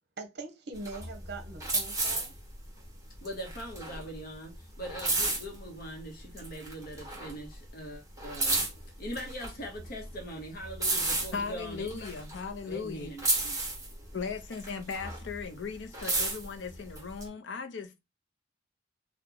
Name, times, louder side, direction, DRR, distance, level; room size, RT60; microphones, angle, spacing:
voice 1, 0.2-2.3, right 3 dB, 60° right, 0.8 m, -42 dB
sound 1, 0.7-6.0 6.3-7.7 7.9-12.9 13.2-15.4 15.7-17.2, right 2 dB, 20° right, 1.4 m, -33 dB
voice 2, 3.2-8.6 9.0-12.1 12.6-13.5, equal, 55° left, 0.9 m, -42 dB
voice 3, 11.3-13.1 14.1-18.0, left 5 dB, 70° left, 0.6 m, -37 dB
2.9 x 2.3 x 3.7 m
head